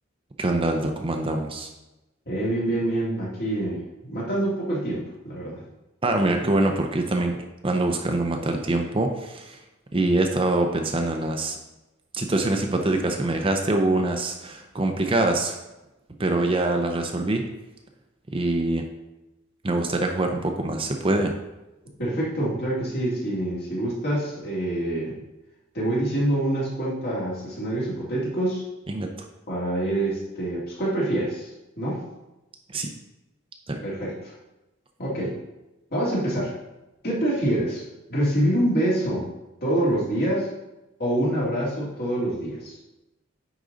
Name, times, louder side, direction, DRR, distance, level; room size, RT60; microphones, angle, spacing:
voice 1, 0.4-1.7 6.0-7.3 7.6-9.6 9.9-11.6 12.1-15.6 16.2-17.4 18.3-18.9 19.6-21.3 28.9-29.1 32.7-32.9 33.7-33.8, right 2 dB, 25° right, 3 dB, 0.6 m, -24 dB
voice 2, 2.3-5.6 22.0-25.2 25.7-28.6 29.5-31.5 31.8-32.0 33.8-34.3 35.0-35.3 35.9-36.5 37.0-37.8 38.1-39.3 39.6-40.5 41.0-42.8, right 1 dB, 50° left, -5 dB, 2.4 m, -26 dB
9.9 x 4.1 x 3.9 m, 1.0 s
head